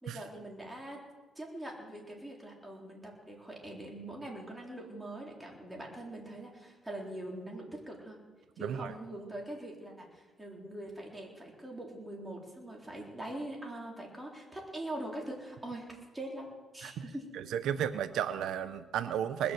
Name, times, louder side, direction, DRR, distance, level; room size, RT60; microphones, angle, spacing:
voice 1, 0.0-1.0 1.4-8.2 8.6-17.2, right 1 dB, 10° right, -1 dB, 3.8 m, -43 dB
voice 2, 8.6-8.9 16.8-17.0 17.3-19.5, right 9 dB, 80° right, 12 dB, 0.5 m, -33 dB
20.5 x 7.0 x 7.7 m, 1.3 s
cardioid pair, 90°, 0 cm